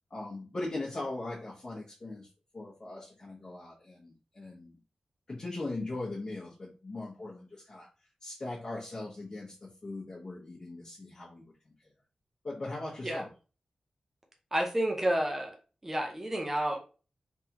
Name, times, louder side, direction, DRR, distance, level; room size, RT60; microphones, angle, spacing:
voice 1, 0.1-2.3 2.5-4.8 5.3-7.9 8.2-11.7 12.4-13.3, left 2 dB, 35° left, -6 dB, 1.0 m, -40 dB
voice 2, 14.5-15.6 15.8-16.8, right 1 dB, 15° right, 1 dB, 0.9 m, -30 dB
3.5 x 3.3 x 2.9 m, 0.34 s
wide cardioid pair, 165°, 2 cm